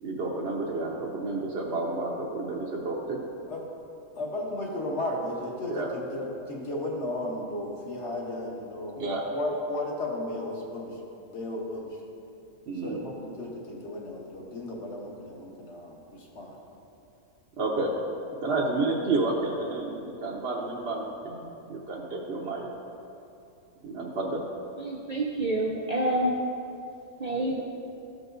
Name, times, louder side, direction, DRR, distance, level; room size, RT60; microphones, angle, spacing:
voice 1, 0.0-3.2 5.7-5.9 9.0-9.3 12.7-13.0 17.6-17.9 18.4-22.7 23.8-24.4, right 3 dB, 55° right, -4 dB, 0.9 m, -30 dB
voice 2, 4.1-9.0 9.3-11.0 11.3-12.0 12.8-16.6 18.5-18.6, left 1 dB, 55° left, -1 dB, 1.3 m, -34 dB
voice 3, 24.8-26.4 27.2-27.6, right 1 dB, 75° right, -2 dB, 0.3 m, -28 dB
13.0 x 4.8 x 2.6 m, 2.7 s
omnidirectional pair, 1.5 m